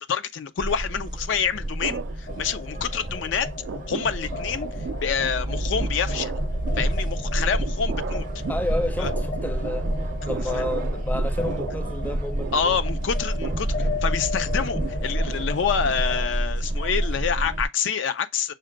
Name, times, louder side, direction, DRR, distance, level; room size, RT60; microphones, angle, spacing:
voice 1, 0.1-3.5 3.9-6.3 6.8-8.3 9.0-9.1 10.5-10.6 12.5-18.5, left 7 dB, 70° left, 0.4 m, -27 dB
sound 1, 0.6-17.6, right 1 dB, 45° right, 0.6 m, -29 dB
sound 2, 1.8-3.0 3.3-16.5, right 6 dB, 75° right, 0.3 m, -38 dB
sound 3, 2.3-16.3, left 4 dB, 55° left, 0.9 m, -37 dB
voice 2, 8.5-9.9 10.3-12.8, left 1 dB, 10° left, 0.5 m, -30 dB
6.2 x 2.1 x 3.7 m
head